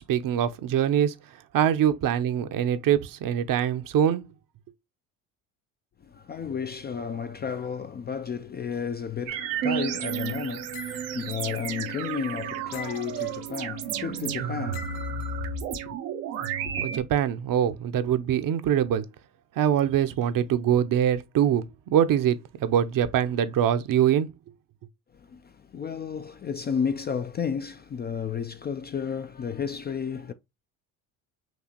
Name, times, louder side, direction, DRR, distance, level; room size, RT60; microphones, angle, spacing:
voice 1, 0.1-1.2 1.5-4.2 16.8-19.1 19.6-24.3, right 9 dB, 50° right, 0.7 m, -23 dB
voice 2, 6.0-16.0 16.5-16.9 25.1-30.3, left 7 dB, 25° left, 0.3 m, -33 dB
sound 1, 9.3-17.0, right 8 dB, 80° right, 0.9 m, -32 dB
sound 2, 10.7-11.3 12.7-13.4 14.7-15.3, left 6 dB, 80° left, 1.0 m, -43 dB
6.0 x 2.8 x 2.9 m
hypercardioid pair, 70°, 43 cm